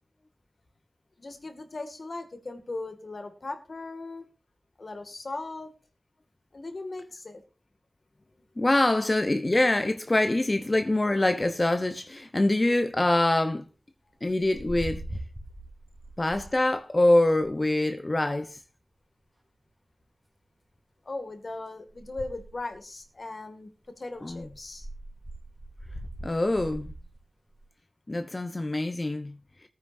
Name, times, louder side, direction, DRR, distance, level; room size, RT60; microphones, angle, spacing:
voice 1, 1.2-4.3 4.8-5.7 6.5-7.4 21.0-23.7 24.0-24.9, left 2 dB, 65° left, 2.1 m, -38 dB
voice 2, 8.6-13.7 14.2-15.0 16.2-18.6 24.2-24.5 26.2-26.9 28.1-29.4, left 1 dB, 40° left, 0.8 m, -24 dB
sound 1, 14.3-16.6 17.1-17.6 21.9-22.8 24.2-27.2 27.5-27.7, right 1 dB, 20° right, 2.9 m, -41 dB
19.0 x 9.6 x 2.7 m
cardioid pair, 45°, 0 cm